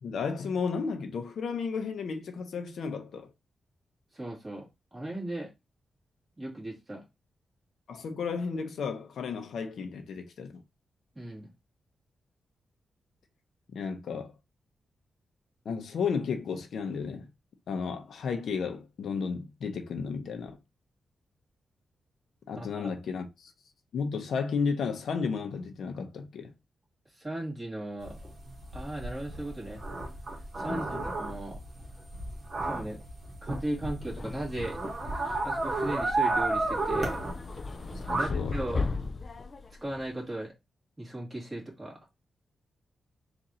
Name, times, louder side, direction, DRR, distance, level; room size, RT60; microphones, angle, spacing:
voice 1, 0.0-3.3 7.9-10.6 13.7-14.3 15.6-17.3 17.7-20.6 22.5-23.5 23.9-26.5 30.7-31.0 38.1-38.6, left 5 dB, 80° left, 0.7 m, -33 dB
voice 2, 4.1-5.5 6.4-7.0 11.2-11.5 22.6-22.9 27.1-28.2 28.7-29.8 30.6-31.6 32.6-33.0 33.4-34.8 35.1-37.2 38.1-38.9 39.8-40.5 41.0-42.0, right 1 dB, 20° right, 2.0 m, -37 dB
sound 1, 28.0-38.3, right 2 dB, 40° right, 1.4 m, -33 dB
sound 2, 34.0-40.1, left 4 dB, 35° left, 0.4 m, -37 dB
3.9 x 2.5 x 4.3 m
wide cardioid pair, 120°, 0 cm